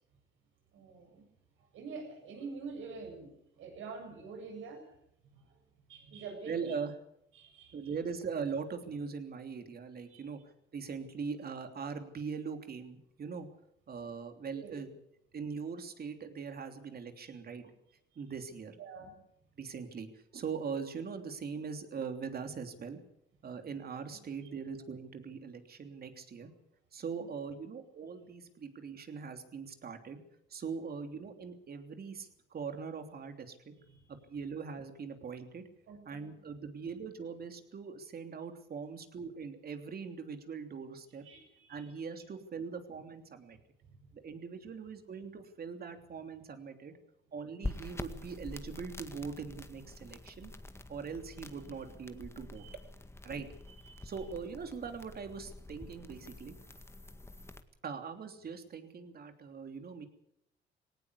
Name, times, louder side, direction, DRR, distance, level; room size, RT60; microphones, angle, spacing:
voice 1, 0.7-1.2 1.7-4.8 5.3-5.4 5.9-6.7 7.3-7.9 10.1-10.2 14.5-14.8 17.2-17.3 18.8-19.1 27.2-27.3 33.9-34.0 35.9-36.4 41.2-41.9 46.9-47.0 52.6-52.7 53.8-54.0, right 4 dB, 80° right, 3 dB, 7.8 m, -46 dB
voice 2, 6.5-6.9 7.7-10.4 10.7-13.5 13.9-15.0 15.3-17.7 18.1-18.8 19.6-23.0 23.4-26.5 26.9-30.2 30.5-33.7 34.3-35.7 36.0-41.2 41.7-43.6 44.1-46.9 47.3-50.5 50.9-52.6 53.2-53.5 54.0-56.5 57.8-60.1, right 5 dB, 50° right, 7 dB, 3.1 m, -41 dB
sound 1, 47.6-57.6, left 2 dB, 15° left, 1.8 m, -46 dB
18.5 x 18.5 x 8.3 m, 0.77 s
cardioid pair, 90°, 20 cm